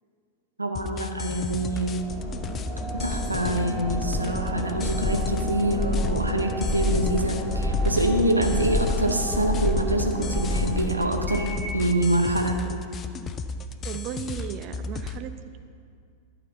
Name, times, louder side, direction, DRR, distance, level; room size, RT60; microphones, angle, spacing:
voice 1, 0.6-2.1 2.9-12.7, right 1 dB, 80° right, 4 dB, 0.7 m, -26 dB
sound 1, 0.7-15.2, left 3 dB, 25° left, 0.4 m, -34 dB
sound 2, 1.3-11.9, left 1 dB, 5° right, 2.2 m, -29 dB
voice 2, 13.8-15.4, right 9 dB, 40° right, 10 dB, 0.4 m, -35 dB
12.0 x 4.4 x 5.5 m, 2.2 s
figure-of-eight pair, 90°, 0 cm